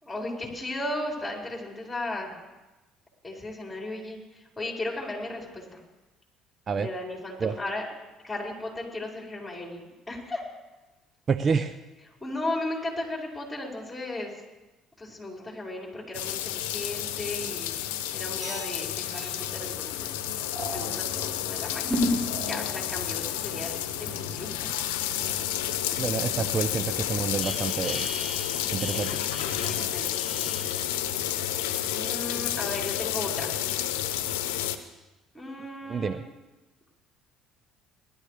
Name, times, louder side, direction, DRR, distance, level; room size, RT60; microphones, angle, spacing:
voice 1, 0.0-2.4 3.2-4.2 4.6-5.8 6.8-7.9 8.2-10.4 12.2-14.3 15.0-17.8 18.1-20.1 20.7-22.1 22.5-24.5 26.1-26.4 29.4-30.5 31.9-33.6 35.3-36.2, left 2 dB, 10° left, -2 dB, 5.2 m, -35 dB
voice 2, 11.3-11.8 26.0-28.1 28.7-29.2 35.9-36.3, right 5 dB, 40° right, 12 dB, 0.6 m, -28 dB
sound 1, 16.1-34.8, left 11 dB, 85° left, 0.8 m, -31 dB
sound 2, 18.4-18.8 19.1-19.4 20.5-20.8 21.9-22.7 23.2-30.8, equal, 20° right, 5.3 m, -35 dB
19.0 x 12.0 x 3.4 m, 1.1 s
hypercardioid pair, 70°, 0 cm